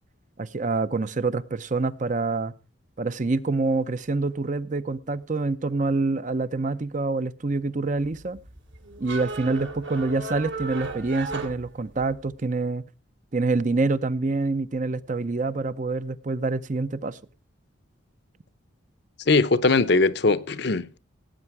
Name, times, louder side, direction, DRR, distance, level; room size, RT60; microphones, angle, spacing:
voice 1, 0.4-2.5 3.0-8.4 9.0-12.8 13.3-17.2, right 3 dB, 40° right, 0.6 m, -26 dB
sound 1, 8.0-12.3, right 3 dB, 65° right, 2.7 m, -35 dB
voice 2, 19.3-21.0, left 3 dB, 55° left, 0.7 m, -20 dB
18.0 x 8.6 x 4.7 m
head